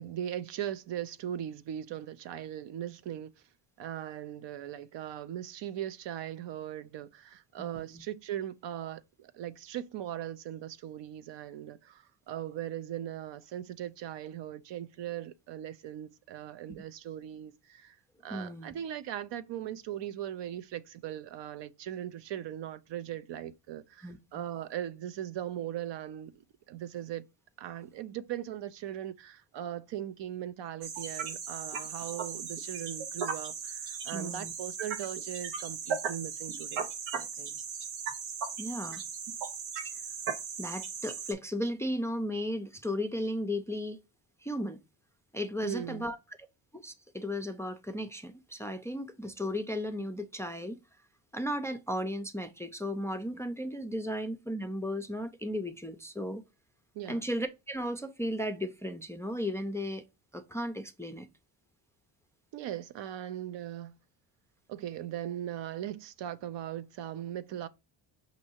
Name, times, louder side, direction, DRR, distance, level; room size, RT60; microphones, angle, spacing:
voice 1, 0.0-3.3 3.8-18.0 18.2-26.4 26.7-27.2 27.6-37.6 45.6-46.1 56.9-57.2 62.5-64.0 64.7-67.7, right 11 dB, 65° right, 0.6 m, -39 dB
voice 2, 7.6-8.0 18.3-18.7 24.0-24.4 34.1-34.5 38.6-39.0 40.6-44.0 44.4-44.8 45.3-46.2 46.7-50.8 51.3-56.4 57.1-60.0 60.3-61.3, equal, 5° left, 0.4 m, -35 dB
sound 1, 30.8-41.3, right 6 dB, 90° right, 1.1 m, -37 dB
5.3 x 2.7 x 2.8 m
cardioid pair, 85°, 46 cm